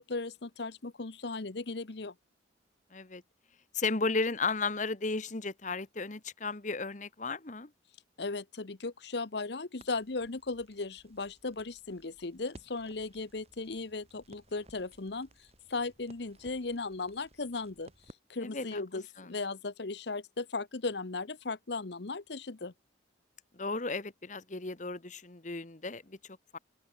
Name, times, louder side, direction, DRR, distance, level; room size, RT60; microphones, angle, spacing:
voice 1, 0.0-2.1 8.2-22.7, left 3 dB, 60° left, 0.9 m, -37 dB
voice 2, 2.9-3.2 3.7-7.7 18.4-18.8 19.2-19.3 23.5-26.2 26.5-26.6, left 3 dB, 40° left, 1.2 m, -34 dB
Crackle, 9.8-19.0, right 1 dB, 35° right, 7.3 m, -59 dB
head